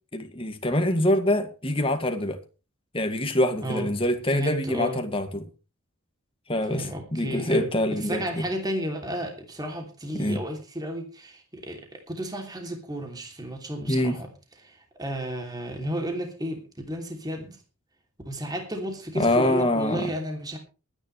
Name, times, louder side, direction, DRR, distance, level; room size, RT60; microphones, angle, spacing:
voice 1, 0.1-2.4 2.9-5.5 6.5-8.4 10.1-10.4 13.9-14.2 19.2-20.1, left 1 dB, 25° left, 2.1 m, -25 dB
voice 2, 4.3-5.0 6.7-7.7 8.0-14.3 14.6-17.6 18.2-20.6, right 1 dB, 20° right, 2.9 m, -33 dB
23.0 x 10.0 x 3.3 m
head